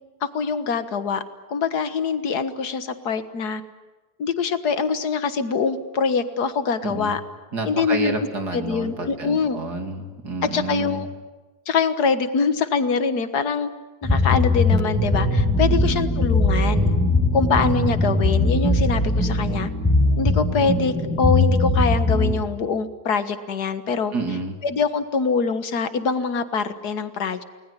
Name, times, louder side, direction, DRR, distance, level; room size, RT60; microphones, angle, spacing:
voice 1, 0.3-1.2 1.5-3.6 4.2-7.2 7.6-8.2 8.5-9.6 10.4-11.1 11.7-13.7 14.0-17.0 17.3-19.7 20.2-24.1 24.6-27.4, left 5 dB, 80° left, 11 dB, 2.0 m, -24 dB
voice 2, 6.8-7.2 7.5-11.1 15.7-16.1 24.1-24.6, right 3 dB, 85° right, 5 dB, 3.4 m, -29 dB
sound 1, 14.0-22.3, left 2 dB, 5° left, 5.5 m, -20 dB
30.0 x 20.0 x 9.9 m, 1.2 s
omnidirectional pair, 1.7 m